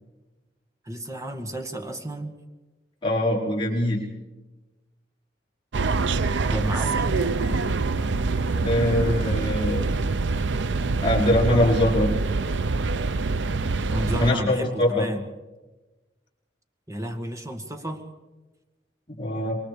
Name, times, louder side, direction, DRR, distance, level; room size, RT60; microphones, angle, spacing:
voice 1, 0.9-2.3 6.5-7.8 8.9-9.4 13.8-15.2 16.9-18.0, right 1 dB, 20° right, 6 dB, 2.0 m, -32 dB
voice 2, 3.0-4.0 8.5-9.8 11.0-12.1 14.1-15.0 19.1-19.6, left 1 dB, 30° left, -3 dB, 4.8 m, -23 dB
sound 1, 5.7-14.3, right 3 dB, 90° right, 0.6 m, -25 dB
27.5 x 23.0 x 5.1 m, 1.1 s
head